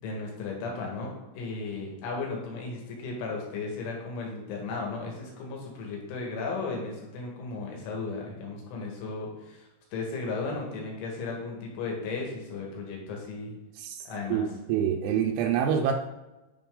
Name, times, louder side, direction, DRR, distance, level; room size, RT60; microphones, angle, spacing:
voice 1, 0.0-13.6 14.0-14.8, left 3 dB, 75° left, -1 dB, 4.1 m, -35 dB
voice 2, 13.8-15.9, right 8 dB, 80° right, 3 dB, 3.0 m, -27 dB
10.0 x 5.3 x 3.8 m, 1.0 s
omnidirectional pair, 5.7 m